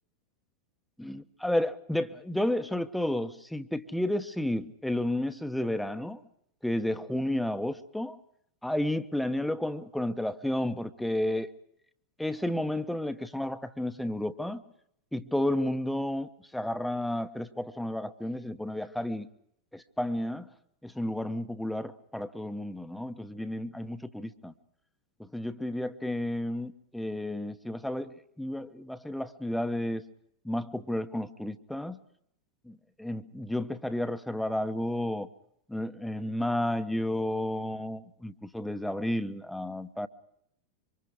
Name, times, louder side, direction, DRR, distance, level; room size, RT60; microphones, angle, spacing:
voice 1, 1.0-6.2 6.6-8.2 8.6-11.5 12.2-14.6 15.1-19.3 19.7-20.5 20.8-24.5 25.2-30.0 30.4-32.0 32.7-35.3 35.7-40.1, left 1 dB, ahead, 9 dB, 1.2 m, -32 dB
26.5 x 25.5 x 5.0 m, 0.73 s
figure-of-eight pair, 90°, 0 cm